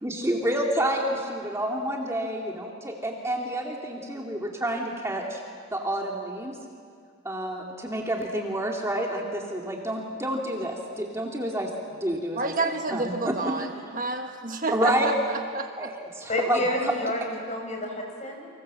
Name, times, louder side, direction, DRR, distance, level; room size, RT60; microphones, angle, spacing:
voice 1, 0.0-5.4 5.7-6.6 7.2-11.7 12.0-13.7 14.7-15.1 15.8-16.9, right 1 dB, 15° right, -1 dB, 2.5 m, -29 dB
voice 2, 12.3-15.9, right 3 dB, 40° right, 5 dB, 1.3 m, -30 dB
voice 3, 16.3-18.5, left 1 dB, 35° left, 2 dB, 5.7 m, -30 dB
29.5 x 26.0 x 7.7 m, 2.2 s
head